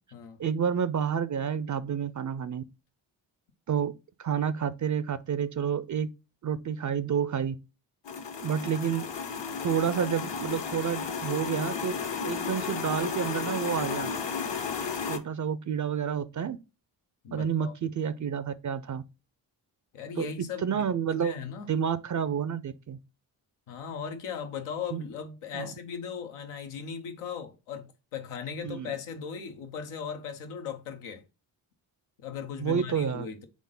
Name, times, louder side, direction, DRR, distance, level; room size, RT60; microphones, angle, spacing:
voice 1, 0.4-2.6 3.7-3.9 4.2-6.1 6.4-7.6 8.4-9.0 9.6-12.0 12.2-14.1 15.1-16.6 17.3-19.0 20.2-20.3 20.6-21.3 21.7-23.0 24.9-25.0 25.5-25.7 28.6-28.9 32.6-33.3, right 7 dB, 40° right, 0.5 m, -29 dB
sound 1, 8.0-15.2, left 6 dB, 55° left, 0.9 m, -33 dB
voice 2, 17.2-17.7 19.9-20.8 21.1-21.7 23.7-31.2 32.2-33.5, left 7 dB, 85° left, 0.8 m, -38 dB
3.8 x 3.7 x 3.7 m
supercardioid pair, 40°, 50 cm